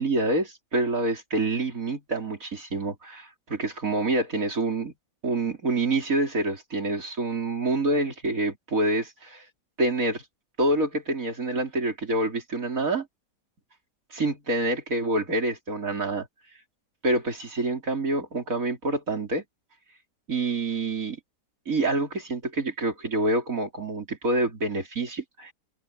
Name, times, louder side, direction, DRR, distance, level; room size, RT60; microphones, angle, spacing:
voice 1, 0.0-4.9 5.2-9.4 9.8-10.2 10.6-13.1 14.1-16.3 17.0-19.4 20.3-21.2 21.7-25.5, right 2 dB, 50° right, 4.3 m, -27 dB
omnidirectional pair, 1.8 m